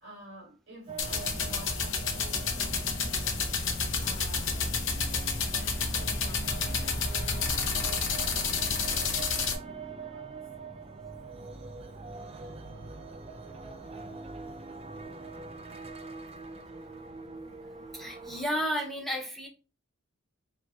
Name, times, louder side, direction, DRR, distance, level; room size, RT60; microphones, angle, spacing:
voice 1, 0.0-7.0 7.3-10.5, equal, 60° right, 1.5 m, -50 dB
sound 1, 0.9-18.5, right 4 dB, 30° right, 0.4 m, -43 dB
sound 2, 1.0-9.6, left 5 dB, 70° left, 0.8 m, -30 dB
voice 2, 17.9-19.5, equal, ahead, 0.9 m, -32 dB
4.5 x 2.9 x 2.7 m
head